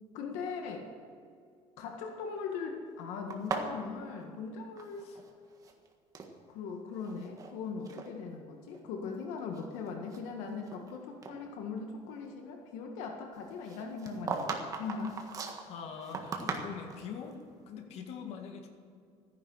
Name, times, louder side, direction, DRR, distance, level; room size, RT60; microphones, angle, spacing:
voice 1, 0.1-0.9 1.8-5.0 6.5-15.2, left 5 dB, 85° left, 3 dB, 1.7 m, -40 dB
sound 1, 3.3-5.3 5.6-6.3 7.0-7.5 7.9-8.1 8.7-8.8 9.4-10.9 11.2-11.4 13.7-17.1, right 4 dB, 30° right, 1.6 m, -39 dB
voice 2, 15.6-17.4 17.7-18.7, left 6 dB, 60° left, 3 dB, 2.0 m, -43 dB
14.0 x 10.5 x 6.6 m, 2.3 s
cardioid pair, 150°, 12 cm